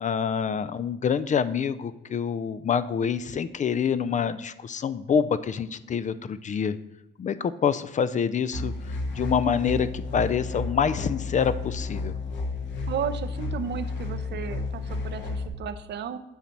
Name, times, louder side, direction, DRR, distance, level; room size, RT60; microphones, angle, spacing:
voice 1, 0.0-6.8 7.2-8.7 9.1-12.1, left 7 dB, 40° left, 14 dB, 0.4 m, -26 dB
sound 1, 8.5-15.5, left 3 dB, 65° left, 1.3 m, -32 dB
voice 2, 12.9-16.2, right 8 dB, 60° right, 11 dB, 0.6 m, -34 dB
7.2 x 4.1 x 5.9 m, 0.95 s
cardioid pair, 90°, 20 cm